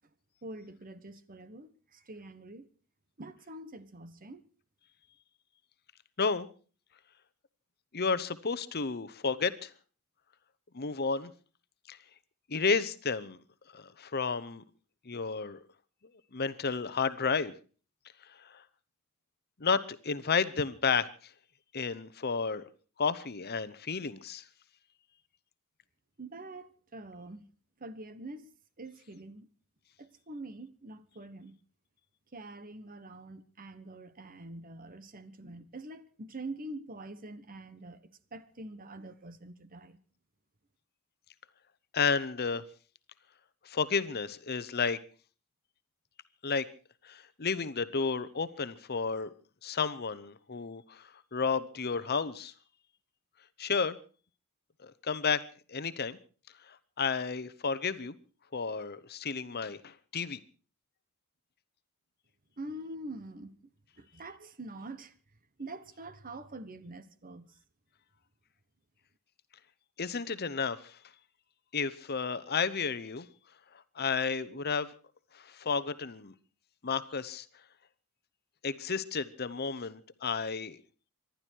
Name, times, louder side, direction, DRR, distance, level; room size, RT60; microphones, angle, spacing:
voice 1, 0.4-2.7 3.2-4.5 26.2-27.4 27.8-28.5 28.8-29.5 30.0-31.6 32.3-40.0 62.6-63.5 64.0-65.1 65.6-67.5, right 2 dB, 40° right, 1.2 m, -45 dB
voice 2, 7.9-9.7 10.7-11.3 11.9-12.0 12.5-13.4 13.7-14.6 15.1-15.6 16.3-17.5 18.3-18.6 19.6-21.1 21.7-22.6 23.0-24.4 41.9-42.6 43.6-45.0 46.4-46.6 47.0-49.3 49.6-52.5 53.6-54.0 54.8-55.4 55.7-56.2 56.7-58.1 58.5-60.4 70.0-71.0 71.7-73.3 74.0-74.9 75.3-76.3 76.8-77.4 78.6-80.8, left 5 dB, 45° left, 0.9 m, -32 dB
25.5 x 11.5 x 4.6 m
head